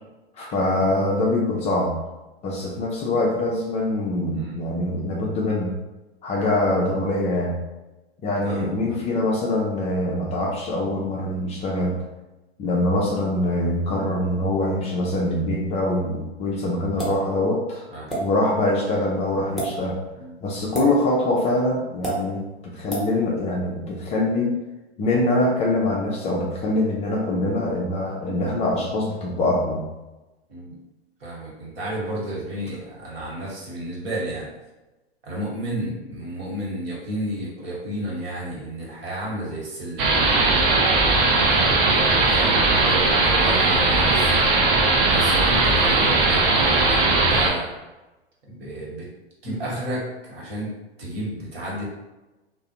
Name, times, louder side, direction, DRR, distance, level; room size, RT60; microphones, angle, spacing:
voice 1, 0.4-1.9 2.4-5.7 6.2-7.6 8.2-12.0 12.6-17.8 18.2-19.9 20.4-24.6 25.0-29.8, left 1 dB, 20° left, -3 dB, 0.3 m, -24 dB
voice 2, 4.4-4.7 8.4-9.0 17.9-18.2 20.1-20.3 30.5-30.8 31.2-34.5 35.2-40.6 41.4-44.3 45.0-47.0 47.3-47.7 48.5-49.1 49.4-50.7 51.0-51.8, right 1 dB, 70° right, -4 dB, 1.2 m, -32 dB
sound 1, 17.0-17.2 18.1-18.2 19.4-19.7 20.7-20.9 22.0-22.2 22.9-23.1, right 3 dB, ahead, 0.8 m, -27 dB
sound 2, 40.0-47.5, right 3 dB, 35° right, 0.5 m, -19 dB
2.4 x 2.1 x 2.7 m, 1.1 s
hypercardioid pair, 110°, 32 cm